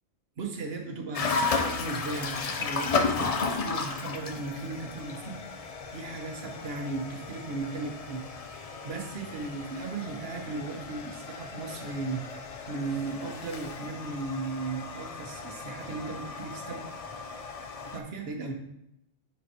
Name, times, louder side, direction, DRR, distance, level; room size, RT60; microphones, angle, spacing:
voice 1, 0.4-8.2 8.5-16.9 17.8-18.5, right 3 dB, 65° right, 3 dB, 1.2 m, -36 dB
sound 1, 1.1-18.0, left 4 dB, 45° left, 0.5 m, -34 dB
9.8 x 4.4 x 2.9 m, 0.79 s
omnidirectional pair, 1.1 m